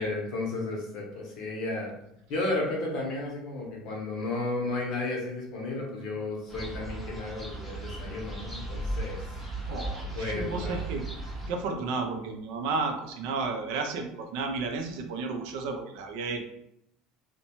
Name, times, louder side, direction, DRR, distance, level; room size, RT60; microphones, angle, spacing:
voice 1, 0.0-1.9 2.3-9.4 10.1-10.8, left 2 dB, 40° left, -1 dB, 0.7 m, -33 dB
sound 1, 6.5-11.5, right 1 dB, ahead, 0.5 m, -36 dB
voice 2, 9.7-11.0 11.5-16.4, right 4 dB, 60° right, 5 dB, 0.4 m, -32 dB
2.6 x 2.1 x 2.9 m, 0.78 s
cardioid pair, 180°, 0 cm